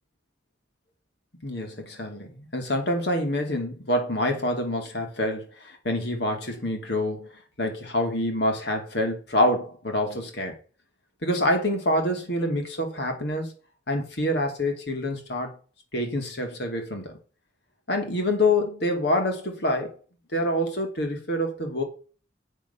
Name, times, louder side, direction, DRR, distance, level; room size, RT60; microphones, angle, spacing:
voice 1, 1.4-7.3 7.6-10.6 11.2-13.5 13.9-15.6 15.9-17.2 17.9-20.0 20.3-21.8, left 1 dB, 60° left, 2.5 m, -26 dB
8.1 x 6.3 x 5.6 m
head